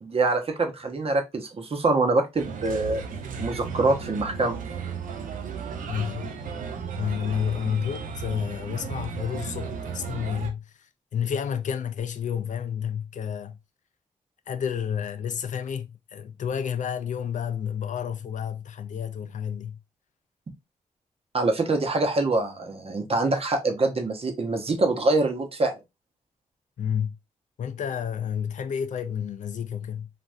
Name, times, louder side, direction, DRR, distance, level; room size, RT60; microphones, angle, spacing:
voice 1, 0.0-3.0 3.4-4.6 21.3-25.7, right 2 dB, 50° right, 0.8 m, -24 dB
Bird, 2.4-10.5, right 5 dB, 90° right, 0.5 m, -35 dB
voice 2, 5.9-6.3 7.0-13.6 14.5-19.8 26.8-27.2 27.6-30.1, left 8 dB, 70° left, 0.4 m, -30 dB
3.4 x 2.5 x 2.6 m
cardioid pair, 65°, 13 cm